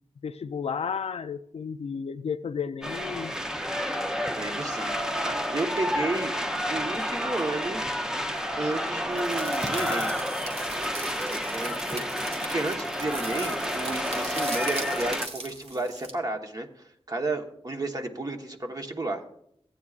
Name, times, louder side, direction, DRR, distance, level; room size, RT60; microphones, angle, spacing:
voice 1, 0.2-3.3, left 6 dB, 70° left, 0.4 m, -32 dB
sound 1, 2.8-15.3, equal, 5° right, 0.6 m, -30 dB
voice 2, 4.4-6.4 6.7-7.8 8.6-10.1 11.5-12.0 12.5-19.2, right 2 dB, 35° right, 1.1 m, -32 dB
sound 2, 9.2-16.1, right 2 dB, 70° right, 1.5 m, -39 dB
14.5 x 9.0 x 2.4 m
wide cardioid pair, 100°, 11 cm